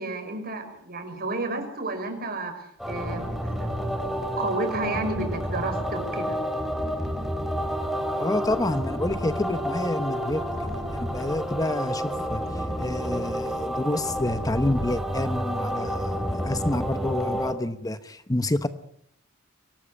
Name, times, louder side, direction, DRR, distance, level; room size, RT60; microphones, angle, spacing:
voice 1, 0.0-2.5 2.9-3.7 4.1-6.4, right 2 dB, 50° right, 6 dB, 5.8 m, -31 dB
sound 1, 2.8-17.5, equal, ahead, 3.6 m, -30 dB
voice 2, 8.2-18.7, left 1 dB, 20° left, 11 dB, 0.9 m, -28 dB
23.5 x 19.0 x 8.6 m, 0.68 s
head